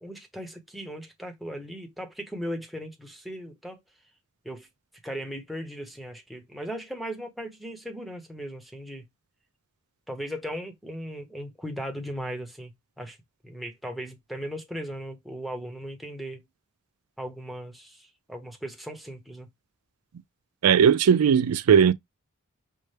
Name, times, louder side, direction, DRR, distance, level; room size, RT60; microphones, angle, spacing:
voice 1, 0.0-3.8 4.4-4.7 5.0-9.1 10.1-13.2 13.4-16.5 17.2-19.5, equal, ahead, 0.8 m, -37 dB
voice 2, 20.6-21.9, right 7 dB, 90° right, 0.4 m, -18 dB
5.4 x 2.2 x 3.2 m
head